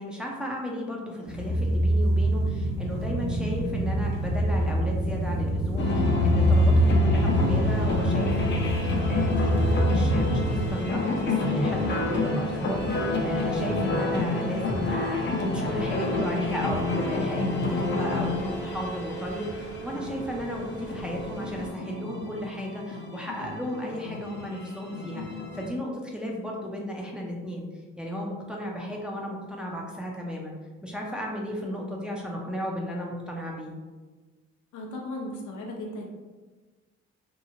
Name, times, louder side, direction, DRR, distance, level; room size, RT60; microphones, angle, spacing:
voice 1, 0.0-11.0 11.3-25.2 25.5-27.7 28.0-30.6 30.8-33.7, equal, 5° right, -2 dB, 0.5 m, -34 dB
sound 1, 1.3-10.7, equal, 60° right, 0.9 m, -24 dB
sound 2, 5.8-25.7, left 3 dB, 40° left, 0.5 m, -29 dB
sound 3, 7.3-21.7, right 4 dB, 25° right, 0.9 m, -40 dB
voice 2, 34.7-36.1, left 1 dB, 80° left, 0 dB, 0.7 m, -36 dB
2.9 x 2.3 x 2.7 m, 1.3 s
cardioid pair, 90°, 30 cm